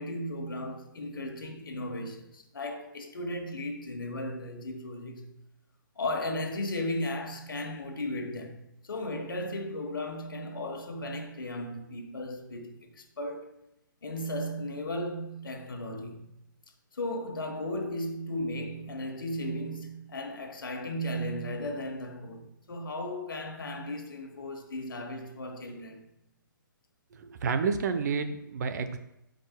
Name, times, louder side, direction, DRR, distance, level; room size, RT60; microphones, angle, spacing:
voice 1, 0.0-5.3 6.0-8.6 8.8-13.6 14.0-16.3 16.9-26.0, left 1 dB, 85° left, 1.3 m, -35 dB
voice 2, 27.1-29.0, right 5 dB, 55° right, 0.8 m, -30 dB
14.0 x 5.1 x 2.2 m
hypercardioid pair, 145°, 11 cm